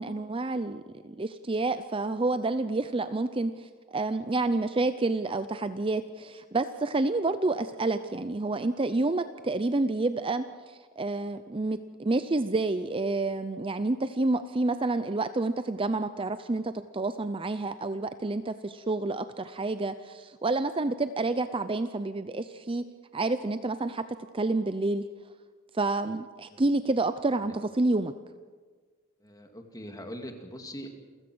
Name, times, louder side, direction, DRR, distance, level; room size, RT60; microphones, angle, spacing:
voice 1, 0.0-22.8 23.1-24.0 24.3-25.0 25.7-28.1, right 2 dB, 25° right, 11 dB, 0.6 m, -29 dB
voice 2, 29.2-30.9, equal, 15° left, 5 dB, 2.2 m, -42 dB
28.5 x 16.0 x 6.2 m, 1.5 s
head